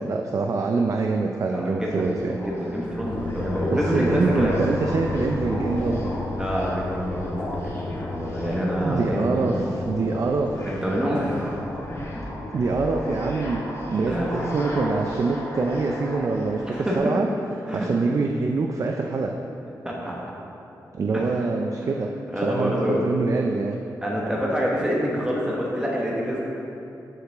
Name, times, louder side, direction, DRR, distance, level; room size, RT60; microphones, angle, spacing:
voice 1, 0.0-2.4 3.7-6.1 8.8-10.7 12.5-13.6 13.9-17.3 17.7-19.3 20.9-22.1 22.3-23.8, right 3 dB, 50° right, 2 dB, 0.4 m, -25 dB
voice 2, 1.4-4.6 6.3-9.6 10.7-11.6 12.1-12.2 14.1-14.5 16.7-16.9 17.7-17.9 19.8-20.1 21.1-21.5 22.3-23.0 24.0-26.4, equal, 10° right, -5 dB, 1.1 m, -27 dB
sound 1, 1.7-17.0, equal, 40° left, 1.5 m, -36 dB
sound 2, 3.0-12.9, left 3 dB, 80° left, 0.9 m, -34 dB
13.0 x 4.8 x 3.5 m, 2.9 s
wide cardioid pair, 135°, 7 cm